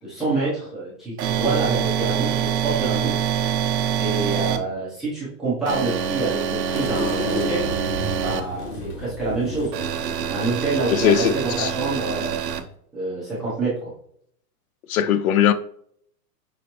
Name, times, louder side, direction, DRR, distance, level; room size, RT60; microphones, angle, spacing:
voice 1, 0.0-3.1 4.0-7.7 8.2-9.8 10.3-12.4 12.9-13.9, right 3 dB, ahead, 0.5 m, -27 dB
sound 1, 1.2-4.6 5.7-8.4 9.7-12.6, right 8 dB, 80° right, 1.0 m, -25 dB
sound 2, 6.7-10.8, equal, 45° left, 1.4 m, -32 dB
voice 2, 10.9-11.7 14.9-15.5, left 9 dB, 60° left, 0.5 m, -19 dB
6.0 x 3.1 x 2.7 m
hypercardioid pair, 160°, 49 cm